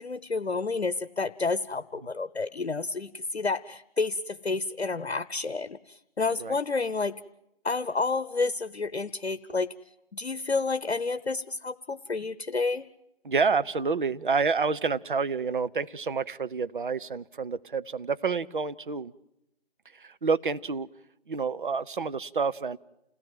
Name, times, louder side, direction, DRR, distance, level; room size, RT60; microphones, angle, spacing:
voice 1, 0.0-7.2 7.6-9.7 10.1-12.9, left 3 dB, 80° left, 13 dB, 0.9 m, -30 dB
voice 2, 13.2-19.1 20.0-20.9 21.3-22.8, right 5 dB, 50° right, 12 dB, 0.8 m, -28 dB
28.5 x 17.5 x 7.6 m, 0.87 s
figure-of-eight pair, 150°, 32 cm